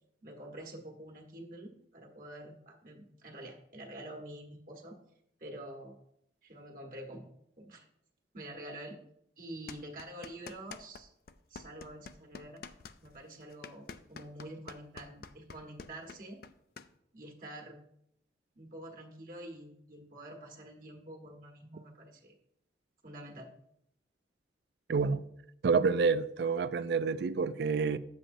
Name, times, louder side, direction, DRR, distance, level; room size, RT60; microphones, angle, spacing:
voice 1, 0.2-5.0 5.4-6.0 6.4-7.3 7.6-7.9 8.3-9.0 9.4-11.1 11.5-12.6 13.0-16.4 17.1-17.8 18.5-22.3 23.0-23.5, right 1 dB, 45° right, 1.3 m, -47 dB
sound 1, 9.7-11.0 11.3-16.9, left 5 dB, 55° left, 0.4 m, -47 dB
voice 2, 24.9-25.2 25.6-28.0, right 5 dB, 65° right, 0.4 m, -28 dB
9.9 x 7.5 x 2.6 m
head